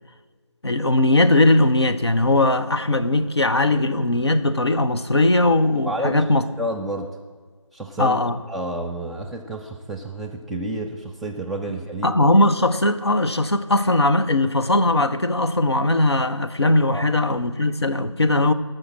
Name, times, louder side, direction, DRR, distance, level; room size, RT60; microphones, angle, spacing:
voice 1, 0.6-6.4 8.0-8.4 12.0-18.5, left 2 dB, 55° left, 0.7 m, -19 dB
voice 2, 5.8-6.3 6.6-7.1 7.7-8.2 8.5-12.2 16.9-17.1, right 1 dB, ahead, 0.4 m, -30 dB
14.0 x 6.4 x 7.2 m
figure-of-eight pair, 175°, 17 cm